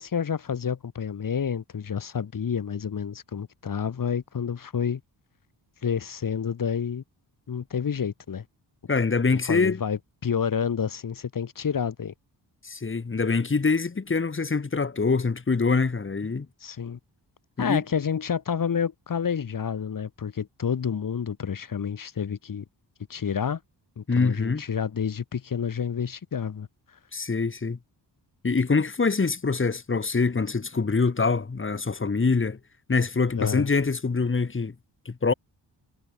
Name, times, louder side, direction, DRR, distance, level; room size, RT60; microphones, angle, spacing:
voice 1, 0.0-5.0 5.8-7.0 7.5-8.4 9.3-12.1 16.6-17.0 17.6-22.6 23.1-23.6 24.0-26.7 33.4-33.7, left 7 dB, 50° left, 2.5 m, -29 dB
voice 2, 8.9-9.8 12.6-16.5 17.6-17.8 24.1-24.6 27.1-27.8 28.4-32.6 32.9-34.7 35.0-35.3, left 4 dB, 30° left, 2.9 m, -24 dB
wide cardioid pair, 120°, 43 cm